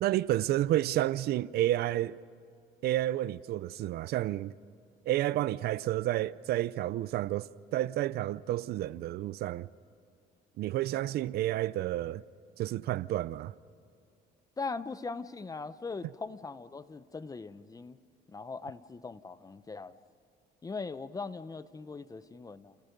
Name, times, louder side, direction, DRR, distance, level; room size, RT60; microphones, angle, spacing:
voice 1, 0.0-2.2 2.8-4.5 5.1-9.7 10.6-12.2 12.6-13.5, right 14 dB, 70° right, 0.6 m, -30 dB
voice 2, 14.6-18.0 18.3-20.0 20.6-22.8, left 4 dB, 20° left, 0.9 m, -40 dB
30.0 x 28.5 x 5.3 m
cardioid pair, 110°, 17 cm